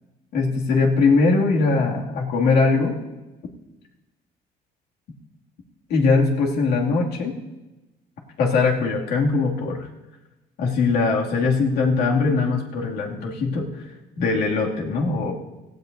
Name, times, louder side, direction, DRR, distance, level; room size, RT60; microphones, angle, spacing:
voice 1, 0.3-3.0 5.9-7.4 8.4-9.9 10.6-13.7 14.2-15.3, left 4 dB, 70° left, -1 dB, 2.3 m, -21 dB
18.0 x 16.0 x 2.6 m, 1.1 s
cardioid pair, 110°, 17 cm